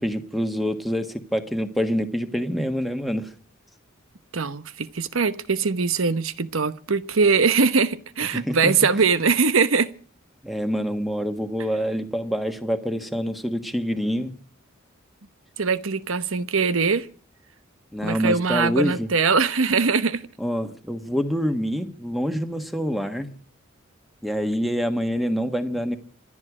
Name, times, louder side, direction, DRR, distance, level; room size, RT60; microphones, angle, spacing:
voice 1, 0.0-3.3 8.3-8.7 10.4-14.3 17.9-19.1 20.4-23.3 24.2-26.0, equal, ahead, 1.5 m, -26 dB
voice 2, 4.3-9.9 15.6-17.1 18.0-20.2, right 4 dB, 75° right, 1.0 m, -22 dB
26.5 x 9.9 x 4.9 m
head